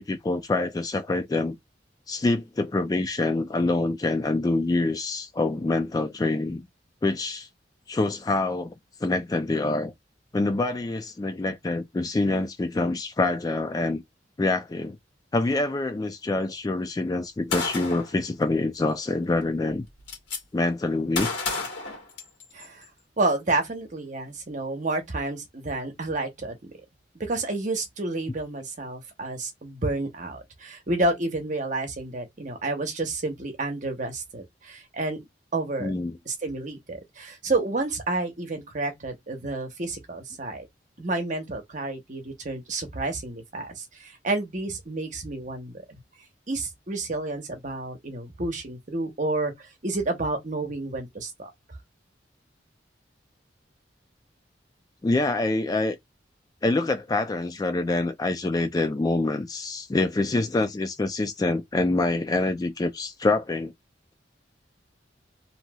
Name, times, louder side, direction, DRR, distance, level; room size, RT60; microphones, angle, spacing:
voice 1, 0.0-1.6 2.1-6.7 7.0-7.5 7.9-8.7 9.0-9.9 10.3-14.0 14.4-15.0 15.3-19.8 20.5-21.3 35.8-36.2 55.0-56.0 56.6-63.7, left 2 dB, 20° left, 0.3 m, -26 dB
Gunshot gunfire, 17.5-18.1 19.3-19.4 19.7-20.4 21.2-22.6, left 4 dB, 85° left, 1.3 m, -31 dB
voice 2, 22.5-22.9 23.2-26.7 27.2-35.2 35.5-35.9 36.3-40.7 41.0-45.8 46.5-51.5, right 2 dB, 45° right, 0.9 m, -30 dB
3.0 x 2.8 x 2.2 m
head